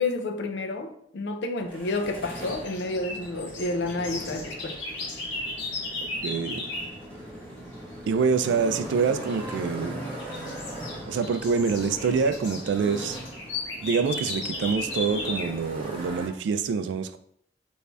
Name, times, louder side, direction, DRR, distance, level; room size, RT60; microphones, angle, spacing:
voice 1, 0.0-4.8, left 2 dB, 65° left, 6 dB, 0.4 m, -30 dB
Motorcycle, 1.6-16.3, right 1 dB, 10° left, 1.2 m, -40 dB
sound 1, 2.2-7.0 9.2-9.6 10.0-15.6, left 2 dB, 85° left, 0.9 m, -36 dB
voice 2, 6.2-6.7 8.1-10.0 11.1-13.2 13.8-17.2, right 5 dB, 75° right, 10 dB, 0.3 m, -26 dB
3.2 x 2.6 x 3.3 m, 0.67 s
head